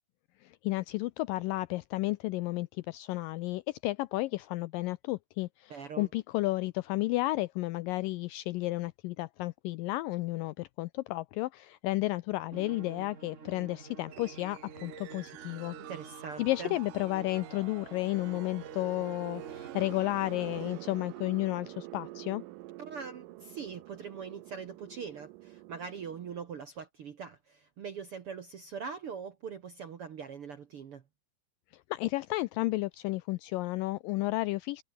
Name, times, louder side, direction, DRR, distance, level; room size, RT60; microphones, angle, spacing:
voice 1, 0.4-15.8 16.4-22.4 31.9-34.8, left 19 dB, 85° left, 2.0 m, -32 dB
voice 2, 5.7-6.1 15.7-16.8 22.8-31.0, right 6 dB, 60° right, 1.5 m, -42 dB
Musical instrument, 12.5-21.0, right 5 dB, 40° right, 1.0 m, -48 dB
sound 1, 14.1-26.4, right 18 dB, 80° right, 2.0 m, -47 dB
omnidirectional pair, 4.4 m